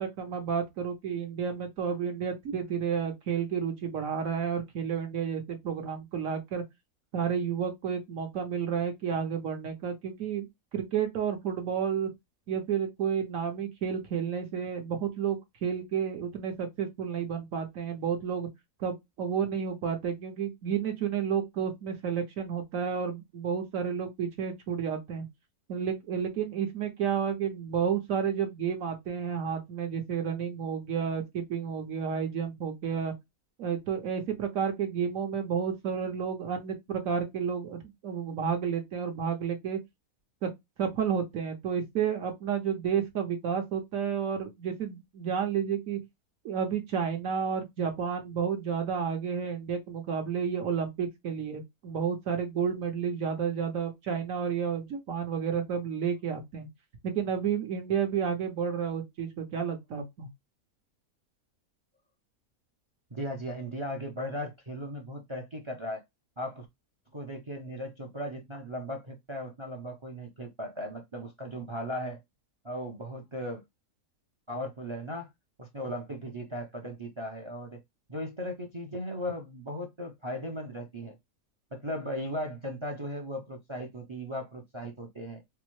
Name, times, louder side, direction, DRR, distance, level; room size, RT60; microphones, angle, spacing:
voice 1, 0.0-6.6 7.1-10.5 10.7-12.1 12.5-18.5 18.8-25.3 25.7-33.1 33.6-39.8 40.4-40.5 40.8-46.0 46.4-56.7 57.0-60.3, right 7 dB, 65° right, 1.2 m, -31 dB
voice 2, 63.1-66.0 66.4-66.7 67.1-72.2 72.6-73.6 74.5-75.3 75.6-77.8 78.1-81.2 81.7-85.4, equal, 40° right, 0.4 m, -37 dB
4.6 x 2.1 x 3.0 m
omnidirectional pair, 1.5 m